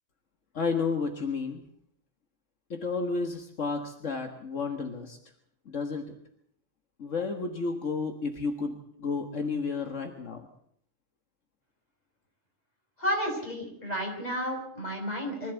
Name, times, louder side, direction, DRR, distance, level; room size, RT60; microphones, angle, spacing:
voice 1, 0.5-1.6 2.7-5.2 5.7-6.1 7.0-10.5, left 4 dB, 75° left, 5 dB, 2.0 m, -32 dB
voice 2, 13.0-15.5, equal, 30° left, 1 dB, 5.6 m, -32 dB
24.0 x 15.0 x 8.2 m, 0.68 s
omnidirectional pair, 1.3 m